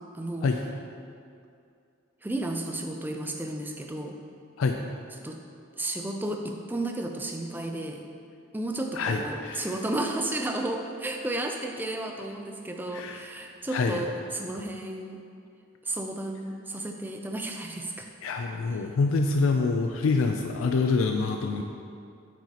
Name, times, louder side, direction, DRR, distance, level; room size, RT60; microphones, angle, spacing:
voice 1, 0.1-0.5 2.2-4.2 5.2-5.4 5.8-8.0 8.5-15.2 15.8-18.1, right 1 dB, 10° right, 3 dB, 0.4 m, -33 dB
voice 2, 8.9-9.7 12.9-13.3 13.7-14.0 18.2-21.6, left 4 dB, 80° left, 4 dB, 0.4 m, -26 dB
8.6 x 6.0 x 2.9 m, 2.4 s
head